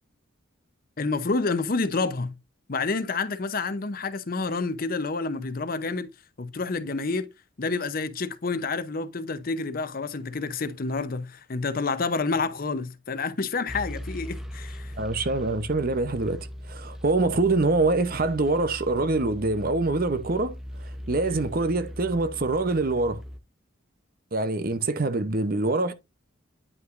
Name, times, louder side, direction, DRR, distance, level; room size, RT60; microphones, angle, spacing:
voice 1, 1.0-2.4 2.7-6.1 6.4-7.3 7.6-14.9, left 3 dB, 45° left, 0.6 m, -29 dB
sound 1, 13.7-23.4, equal, ahead, 0.7 m, -39 dB
voice 2, 15.0-23.2 24.3-25.9, right 3 dB, 45° right, 0.7 m, -25 dB
9.5 x 5.6 x 2.5 m
head